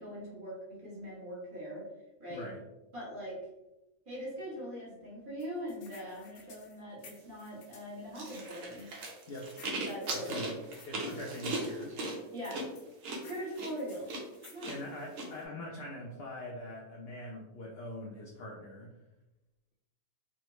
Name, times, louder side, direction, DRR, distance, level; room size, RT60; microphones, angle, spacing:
voice 1, 0.0-1.8 2.2-2.4 2.9-3.5 4.1-8.9 9.8-10.4 12.3-12.7 13.2-14.2 14.5-14.7, equal, 40° right, -7 dB, 1.2 m, -41 dB
voice 2, 2.3-2.6 9.3-9.5 10.1-10.5 10.8-12.0 14.7-18.9, left 1 dB, 65° left, -1 dB, 0.6 m, -43 dB
sound 1, 5.4-7.9 8.8-11.6 12.4-14.7, left 5 dB, 85° left, 1.1 m, -56 dB
sound 2, 8.1-15.3, right 2 dB, 70° right, 1.0 m, -38 dB
3.5 x 2.1 x 2.9 m, 0.96 s
omnidirectional pair, 1.5 m